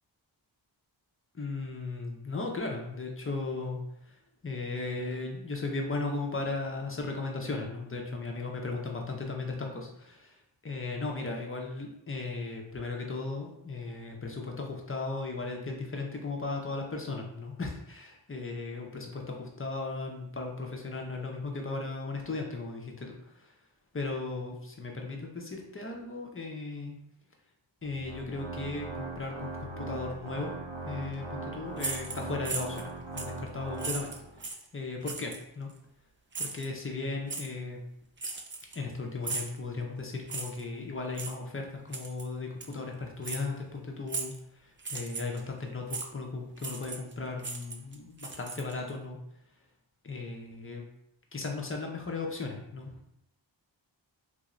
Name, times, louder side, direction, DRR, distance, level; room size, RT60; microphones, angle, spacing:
voice 1, 1.3-10.4 10.6-23.5 23.9-27.0 27.8-30.5 30.8-34.1 34.4-35.7 36.4-37.8 38.7-49.2 50.0-50.8 51.3-53.1, left 3 dB, 30° left, 1 dB, 0.5 m, -36 dB
Organ, 27.8-34.4, right 2 dB, 70° right, 0.7 m, -40 dB
sound 1, 31.8-32.9 33.2-33.4 33.8-34.7 35.1-35.4 36.3-36.7 37.3-37.5 38.2-38.9 39.2-39.6 40.3-40.6 41.1-41.4 41.9-42.3 42.6-42.7 43.2-43.4 44.1-44.4 44.8-45.4 45.9-46.1 46.6-47.1 47.4-48.9, right 4 dB, 30° right, 0.3 m, -37 dB
3.3 x 2.5 x 3.0 m, 0.76 s
wide cardioid pair, 110°, 46 cm